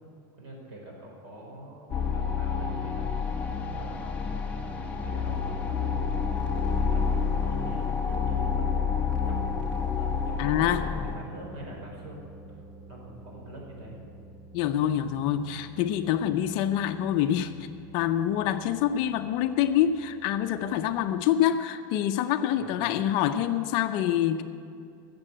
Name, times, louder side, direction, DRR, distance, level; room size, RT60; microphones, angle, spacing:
voice 1, 0.4-4.2 4.6-9.5 9.8-12.2 12.9-14.0 22.5-22.9, right 1 dB, 50° right, -1 dB, 4.4 m, -45 dB
sound 1, 1.9-11.1, left 6 dB, 10° left, 0.8 m, -29 dB
sound 2, 5.6-21.2, right 2 dB, 20° right, 1.2 m, -46 dB
voice 2, 10.4-10.8 14.5-17.7 17.9-24.4, left 10 dB, 45° left, 8 dB, 0.5 m, -26 dB
14.0 x 7.6 x 8.9 m, 2.4 s
supercardioid pair, 165°, 11 cm